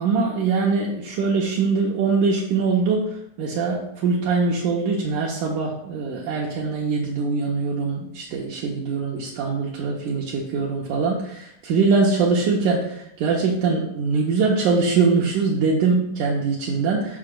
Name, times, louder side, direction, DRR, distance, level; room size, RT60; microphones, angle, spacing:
voice 1, 0.0-3.1 3.4-17.2, right 4 dB, 75° right, -3 dB, 2.2 m, -22 dB
12.5 x 4.8 x 2.3 m, 0.75 s
omnidirectional pair, 3.9 m